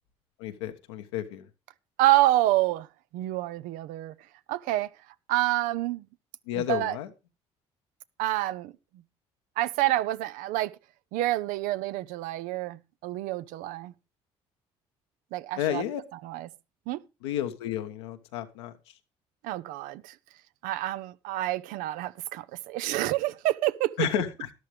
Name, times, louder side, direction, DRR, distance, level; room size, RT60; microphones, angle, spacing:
voice 1, 0.4-1.5 6.5-7.1 15.6-16.0 17.2-18.7 24.0-24.5, left 11 dB, 85° left, 1.3 m, -31 dB
voice 2, 2.0-2.9 3.1-4.1 4.5-4.9 5.3-6.1 6.5-7.0 8.2-8.7 9.6-10.7 11.1-13.9 15.3-15.8 16.2-16.5 16.9-17.0 19.4-20.1 20.6-23.9, right 16 dB, 75° right, 0.7 m, -27 dB
13.0 x 11.5 x 3.2 m
hypercardioid pair, 60°, 14 cm